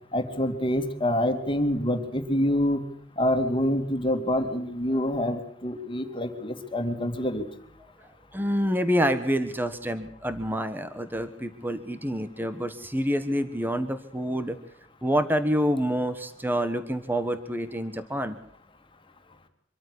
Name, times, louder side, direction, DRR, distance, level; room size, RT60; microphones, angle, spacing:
voice 1, 0.1-2.8 3.2-7.4, left 1 dB, 25° left, 5 dB, 2.7 m, -26 dB
voice 2, 8.0-14.6 15.0-18.4, equal, 10° right, 9 dB, 1.2 m, -27 dB
25.5 x 14.0 x 8.3 m, 0.65 s
head